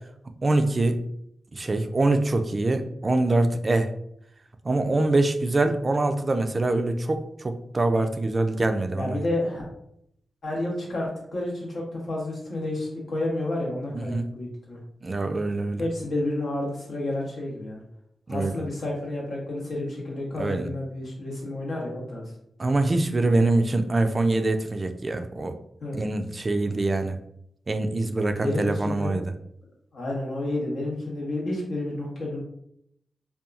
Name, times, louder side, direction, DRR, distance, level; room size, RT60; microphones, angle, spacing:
voice 1, 0.4-1.0 1.5-3.9 4.7-9.2 14.1-14.3 15.0-15.8 18.3-18.5 20.4-20.7 22.6-25.6 25.9-27.2 27.7-29.3, right 2 dB, 40° right, 7 dB, 0.3 m, -24 dB
voice 2, 9.0-9.6 10.4-14.8 15.8-17.8 18.3-22.2 25.8-26.0 28.3-29.1 29.9-32.4, left 1 dB, 75° left, -2 dB, 0.9 m, -30 dB
2.8 x 2.2 x 2.4 m, 0.74 s
cardioid pair, 45°, 0 cm